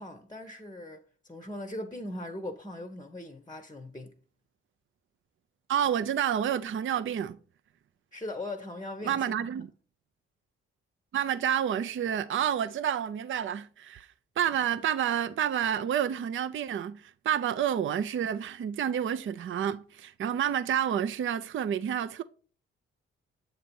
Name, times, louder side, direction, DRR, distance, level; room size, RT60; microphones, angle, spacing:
voice 1, 0.0-4.2 8.1-9.5, left 1 dB, 15° left, 0.8 m, -40 dB
voice 2, 5.7-7.4 9.0-9.7 11.1-14.1 14.4-22.2, right 9 dB, 40° right, 0.5 m, -29 dB
7.6 x 2.9 x 5.2 m
hypercardioid pair, 40°, 31 cm